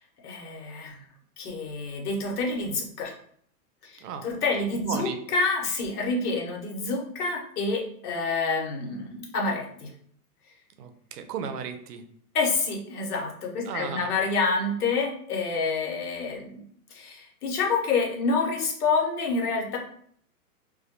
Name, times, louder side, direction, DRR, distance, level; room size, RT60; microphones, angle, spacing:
voice 1, 0.2-1.0 1.4-3.1 3.8-9.9 12.3-16.6 16.9-19.8, left 3 dB, 75° left, 0 dB, 0.9 m, -28 dB
voice 2, 4.7-5.2 10.8-12.0 13.7-14.1, right 7 dB, 80° right, 8 dB, 0.6 m, -35 dB
2.2 x 2.1 x 2.8 m, 0.63 s
hypercardioid pair, 170°, 46 cm